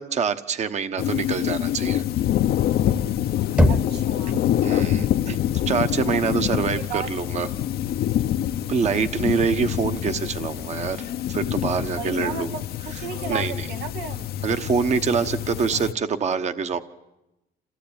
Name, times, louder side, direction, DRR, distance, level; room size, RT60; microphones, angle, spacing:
voice 1, 0.0-2.0 4.6-5.4 5.7-7.5 8.7-12.5 13.3-13.7 14.4-16.8, right 5 dB, 40° right, 10 dB, 1.1 m, -25 dB
sound 1, 1.0-15.9, left 11 dB, 65° left, 0.8 m, -26 dB
Knock, 3.6-4.5, equal, 5° right, 1.0 m, -21 dB
voice 2, 3.7-4.4 6.1-7.1 12.0-14.3, right 7 dB, 80° right, 7 dB, 1.2 m, -35 dB
27.0 x 16.0 x 8.9 m, 0.96 s
cardioid pair, 110°, 17 cm